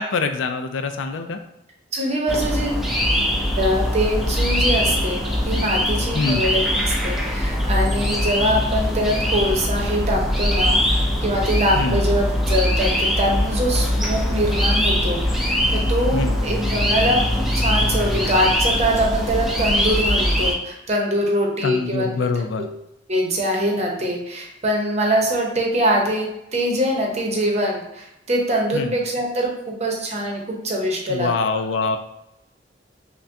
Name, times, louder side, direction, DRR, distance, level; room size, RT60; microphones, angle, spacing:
voice 1, 0.0-1.4 6.1-6.5 11.7-12.0 16.1-16.4 21.6-22.7 28.7-28.9 31.1-32.0, left 4 dB, 80° left, 7 dB, 0.4 m, -24 dB
voice 2, 1.9-2.9 3.6-17.2 17.5-22.3 22.5-22.7 23.1-31.6, equal, 35° right, 0 dB, 0.8 m, -23 dB
sound 1, 2.3-20.6, equal, ahead, 0.5 m, -21 dB
5.7 x 2.2 x 2.7 m, 0.86 s
head